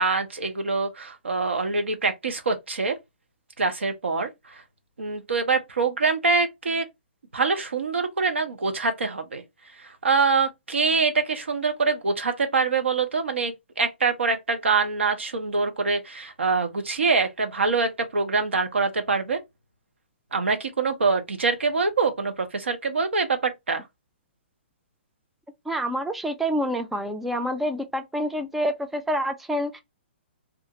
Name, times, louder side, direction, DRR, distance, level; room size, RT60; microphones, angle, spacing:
voice 1, 0.0-3.0 3.6-4.6 5.0-6.9 7.3-9.4 9.8-19.4 20.3-23.8, right 4 dB, 90° right, 0.7 m, -24 dB
voice 2, 25.7-29.8, equal, 5° right, 0.3 m, -27 dB
2.5 x 2.4 x 2.8 m
hypercardioid pair, 135°, 6 cm